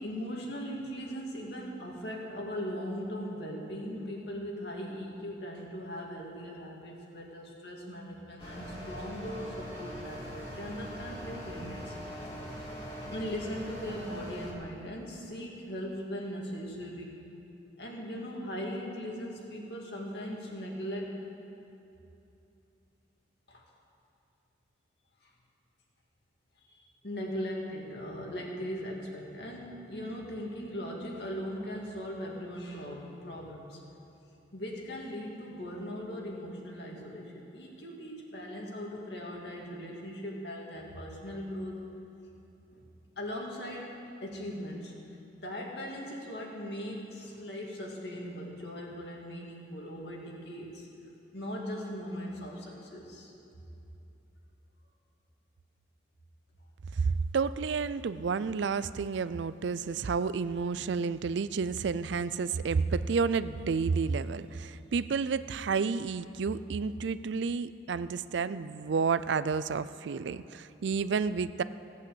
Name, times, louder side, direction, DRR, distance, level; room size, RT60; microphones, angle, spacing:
voice 1, 0.0-12.0 12.9-17.2 17.8-21.1 23.5-23.6 25.2-25.3 26.6-33.8 34.5-41.8 42.7-42.8 43.2-44.9 45.3-50.9 51.3-53.3, equal, 65° left, -1 dB, 2.3 m, -39 dB
sound 1, 8.4-14.5, equal, 30° left, 2.3 m, -42 dB
voice 2, 57.0-71.6, right 5 dB, 75° right, 15 dB, 0.4 m, -30 dB
17.0 x 8.4 x 7.8 m, 2.9 s
head